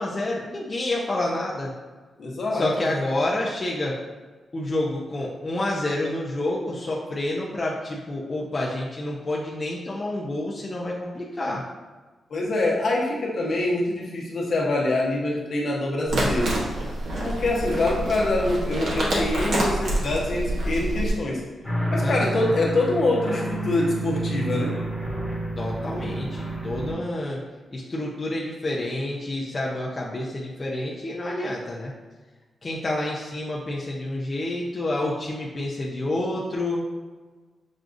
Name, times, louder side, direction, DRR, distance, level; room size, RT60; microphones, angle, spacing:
voice 1, 0.0-1.7 2.5-4.0 4.5-11.6 22.0-22.5 25.6-27.4 27.7-31.9 32.6-36.8, left 1 dB, 30° left, -4 dB, 0.5 m, -28 dB
voice 2, 2.2-3.0 12.3-16.6 17.2-21.4 21.9-24.8, left 2 dB, 60° left, -3 dB, 0.9 m, -25 dB
sound 1, 16.1-21.1, right 1 dB, 75° right, 1.1 m, -26 dB
sound 2, 21.6-26.9, right 1 dB, ahead, 1.1 m, -29 dB
6.1 x 2.3 x 2.5 m, 1.4 s
cardioid pair, 105°, 0 cm